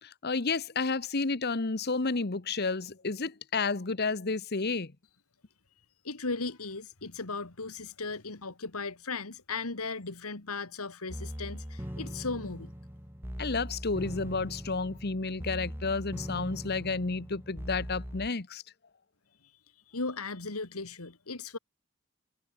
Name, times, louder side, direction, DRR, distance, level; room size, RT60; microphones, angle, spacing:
voice 1, 0.0-4.9 13.4-18.6, left 4 dB, 45° left, 1.1 m, -31 dB
voice 2, 6.0-12.7 19.9-21.6, left 3 dB, 80° left, 2.3 m, -37 dB
sound 1, 11.1-18.3, equal, 10° right, 6.7 m, -40 dB
head